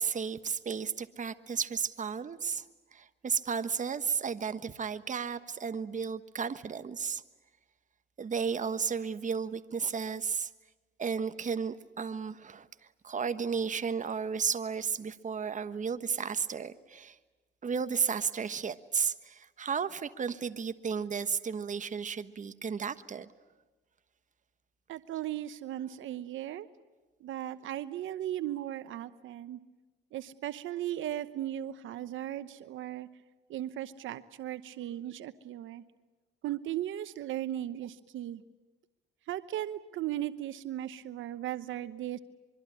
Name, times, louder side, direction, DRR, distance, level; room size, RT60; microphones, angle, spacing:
voice 1, 0.0-2.6 2.9-7.2 8.2-10.5 11.0-12.7 13.0-17.2 17.6-23.3, right 6 dB, 40° right, 11 dB, 1.3 m, -33 dB
voice 2, 24.9-26.7 27.2-29.6 30.1-33.1 33.5-35.8 36.4-38.4 39.3-42.2, right 12 dB, 80° right, 13 dB, 1.0 m, -37 dB
24.5 x 24.0 x 9.9 m, 1.2 s
cardioid pair, 90°, 20 cm